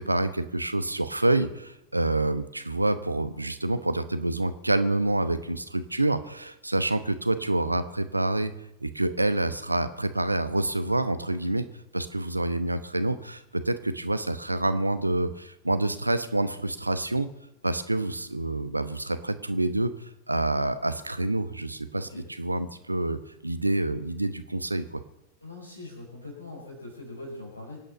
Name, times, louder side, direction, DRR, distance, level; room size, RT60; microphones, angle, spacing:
voice 1, 0.0-8.5 8.8-11.6 11.9-17.3 17.6-22.1 22.4-25.0, right 2 dB, 85° right, 11 dB, 1.0 m, -27 dB
voice 2, 25.4-27.8, left 2 dB, 85° left, -1 dB, 5.4 m, -42 dB
24.5 x 9.1 x 5.6 m, 0.91 s
figure-of-eight pair, 90°, 0 cm